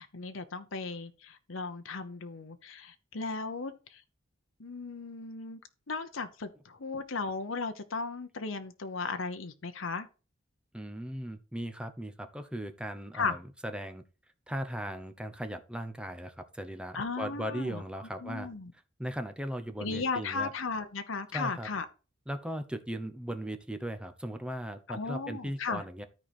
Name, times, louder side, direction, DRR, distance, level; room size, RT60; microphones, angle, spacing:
voice 1, 0.0-4.0 4.6-5.6 5.9-10.1 13.1-13.4 16.9-18.7 19.8-21.8 24.9-25.8, left 4 dB, 70° left, 0.9 m, -36 dB
voice 2, 10.7-14.0 14.5-18.5 19.0-20.5 21.3-21.7 22.3-26.0, equal, 5° right, 0.8 m, -38 dB
13.0 x 4.5 x 4.2 m
head